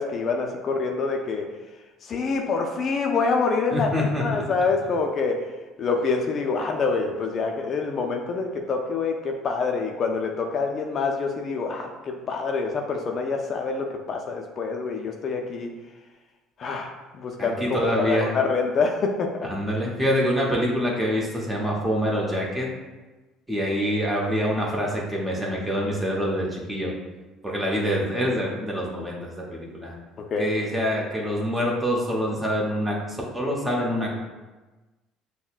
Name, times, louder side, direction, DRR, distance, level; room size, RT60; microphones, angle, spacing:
voice 1, 0.0-1.5 2.1-5.4 5.8-15.7 16.6-16.9 17.2-17.5 18.0-19.5 30.3-30.5, left 4 dB, 50° left, 2 dB, 0.4 m, -26 dB
voice 2, 3.7-4.5 17.4-18.3 19.4-22.7 23.5-26.9 27.4-29.9 30.4-34.1, equal, 15° right, -3 dB, 1.0 m, -26 dB
5.5 x 2.1 x 2.4 m, 1.2 s
hypercardioid pair, 65°, 0 cm